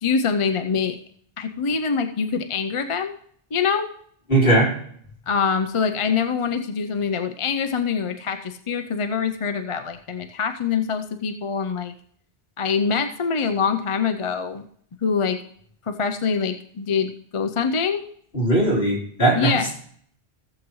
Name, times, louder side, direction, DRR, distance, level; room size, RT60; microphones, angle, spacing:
voice 1, 0.0-1.0 1.4-3.1 3.5-3.9 5.3-11.9 12.6-14.6 15.0-15.4 15.9-18.1 19.3-19.7, left 6 dB, 40° left, 7 dB, 0.5 m, -24 dB
voice 2, 4.3-4.7 18.3-19.8, right 1 dB, 60° left, -5 dB, 3.7 m, -19 dB
16.5 x 7.5 x 3.1 m, 0.62 s
omnidirectional pair, 1.1 m